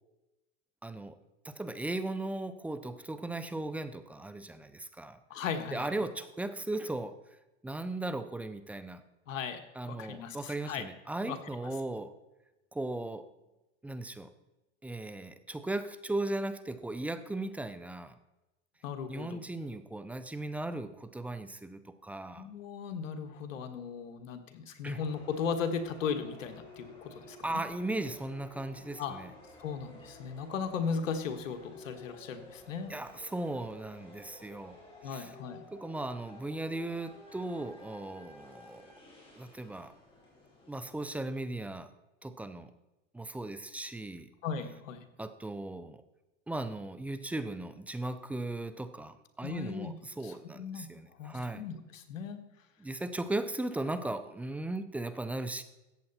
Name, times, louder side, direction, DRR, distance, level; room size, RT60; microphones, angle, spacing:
voice 1, 0.8-1.2 1.4-5.2 5.7-7.1 7.6-9.0 9.7-12.1 12.7-13.3 13.8-14.3 14.8-18.1 19.1-22.5 24.8-25.0 27.4-29.3 32.9-34.8 35.0-35.3 35.7-38.9 39.4-39.9 40.7-41.9 42.2-42.7 43.1-44.3 45.2-46.0 46.5-51.6 52.8-55.6, right 2 dB, 5° right, 12 dB, 0.4 m, -37 dB
voice 2, 5.3-5.9 9.3-10.8 11.3-11.4 18.8-19.4 22.4-27.6 29.0-29.2 29.6-32.9 35.0-35.6 44.4-45.0 49.4-49.9 50.2-50.9 51.2-52.4, left 6 dB, 85° left, 8 dB, 1.6 m, -37 dB
sound 1, 25.0-41.0, left 2 dB, 15° left, 4.0 m, -53 dB
14.0 x 8.7 x 4.2 m, 1.0 s
supercardioid pair, 125°, 37 cm